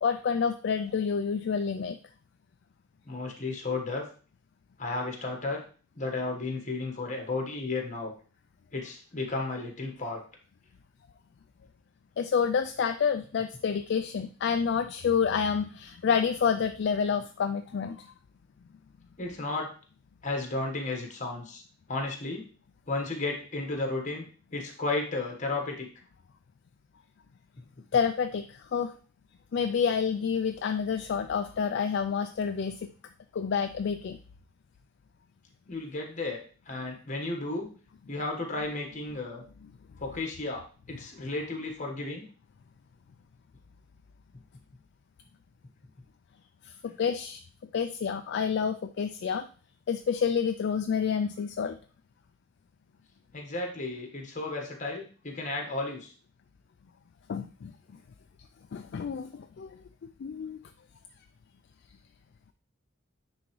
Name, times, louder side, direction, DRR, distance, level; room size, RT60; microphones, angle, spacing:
voice 1, 0.0-2.0 12.2-18.1 27.9-28.9 29.5-32.9 33.3-34.2 47.0-47.4 47.7-49.5 49.9-51.8 57.3-57.7 58.7-59.8 60.2-60.6, left 6 dB, 55° left, 8 dB, 0.3 m, -28 dB
voice 2, 3.0-4.0 4.8-5.6 5.9-8.1 8.7-10.2 19.2-19.7 20.2-21.6 21.9-22.5 22.9-24.2 24.5-25.9 27.6-27.7 35.7-36.4 36.6-37.7 38.1-39.4 40.0-42.2 46.9-47.0 53.3-56.1, left 2 dB, 35° left, 2 dB, 1.4 m, -33 dB
9.8 x 3.5 x 3.1 m, 0.40 s
head